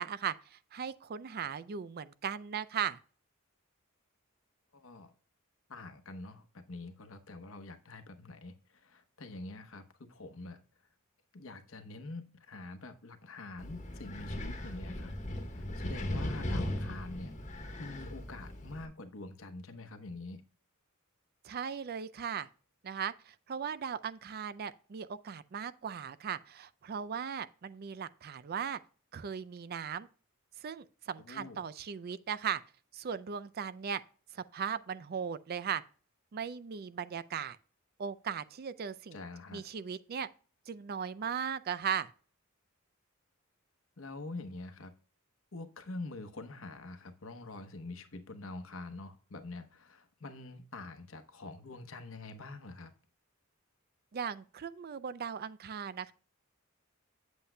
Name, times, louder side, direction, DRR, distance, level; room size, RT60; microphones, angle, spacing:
voice 1, 0.0-3.0 21.4-22.5 22.8-28.8 29.1-30.1 30.6-32.6 32.9-34.0 34.3-35.8 36.3-37.6 38.0-39.2 39.5-40.3 40.7-42.1 54.1-56.1, right 7 dB, 50° right, 0.4 m, -38 dB
voice 2, 4.7-5.1 5.7-10.6 11.3-15.1 15.5-20.4 31.2-31.6 39.1-39.7 44.0-44.9 45.5-52.9, left 2 dB, 70° left, 0.9 m, -46 dB
Wind, 13.6-18.8, left 1 dB, 35° left, 1.2 m, -38 dB
8.2 x 8.0 x 2.2 m
head